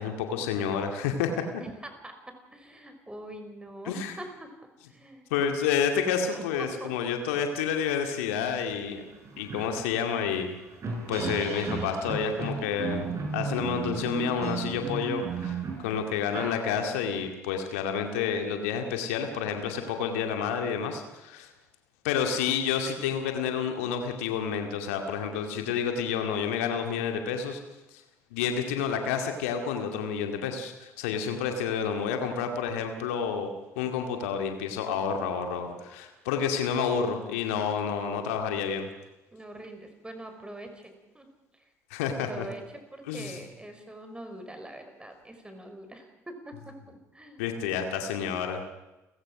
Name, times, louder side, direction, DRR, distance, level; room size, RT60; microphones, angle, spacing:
voice 1, 0.0-1.4 3.9-4.1 5.3-9.0 9.4-10.6 11.1-21.5 22.0-27.6 28.3-33.5 33.8-38.9 41.9-42.5 43.1-43.4 47.4-48.6, left 7 dB, 75° left, 5 dB, 2.3 m, -29 dB
voice 2, 1.6-2.2 2.5-5.5 6.3-6.9 7.3-7.5 39.3-41.3 41.5-41.7 42.2-46.7 47.1-47.4, right 1 dB, 10° right, 6 dB, 5.3 m, -44 dB
sound 1, 8.7-8.8 9.1-17.2, right 4 dB, 45° right, 7.9 m, -35 dB
30.0 x 16.0 x 6.2 m, 1.0 s
figure-of-eight pair, 55°, 8 cm